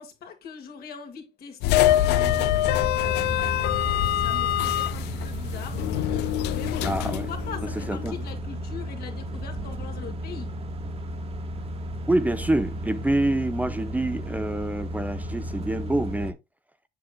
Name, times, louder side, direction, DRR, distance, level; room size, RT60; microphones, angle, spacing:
voice 1, 0.0-2.5 3.0-5.9 6.5-10.5, left 7 dB, 65° left, 2.5 m, -41 dB
sound 1, 1.6-8.1, left 13 dB, 85° left, 0.5 m, -25 dB
sound 2, 1.7-16.3, right 1 dB, 35° right, 1.4 m, -34 dB
voice 2, 6.8-7.3 7.8-8.1 12.1-16.4, right 1 dB, 10° right, 0.7 m, -26 dB
7.7 x 7.5 x 2.2 m
cardioid pair, 110°, 17 cm